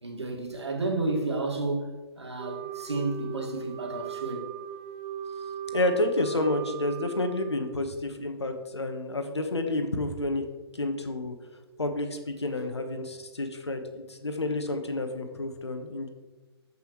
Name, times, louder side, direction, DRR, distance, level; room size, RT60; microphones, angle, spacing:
voice 1, 0.0-4.5, right 2 dB, 85° right, 2.1 m, -31 dB
Wind instrument woodwind instrument, 2.4-8.0, right 8 dB, 25° right, 0.4 m, -38 dB
voice 2, 5.7-10.4 10.7-11.4 11.8-16.1, left 2 dB, 85° left, 1.2 m, -30 dB
14.0 x 5.5 x 3.1 m
figure-of-eight pair, 125°, 14 cm